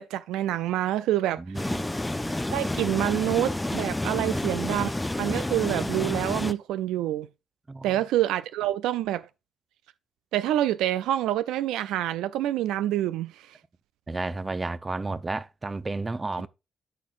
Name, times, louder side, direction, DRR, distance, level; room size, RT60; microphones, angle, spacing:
voice 1, 0.0-1.7 2.5-4.9 5.2-7.3 7.8-9.2 10.3-13.5, right 13 dB, 90° right, 0.3 m, -27 dB
voice 2, 1.4-1.9 4.1-4.8 7.7-7.9 14.1-16.5, right 3 dB, 30° right, 0.6 m, -32 dB
sound 1, 1.5-6.5, left 1 dB, 15° left, 0.6 m, -29 dB
12.0 x 4.4 x 2.5 m
supercardioid pair, 60°, 0 cm